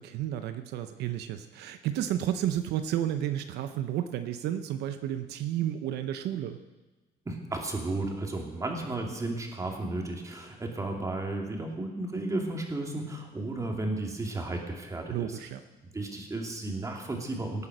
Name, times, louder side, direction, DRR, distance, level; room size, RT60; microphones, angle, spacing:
voice 1, 0.0-6.6 15.1-15.6, right 11 dB, 80° right, 9 dB, 0.8 m, -32 dB
voice 2, 7.3-15.4 15.9-17.7, right 2 dB, 20° right, 1 dB, 2.7 m, -33 dB
18.0 x 8.4 x 6.2 m, 1.2 s
cardioid pair, 110°, 17 cm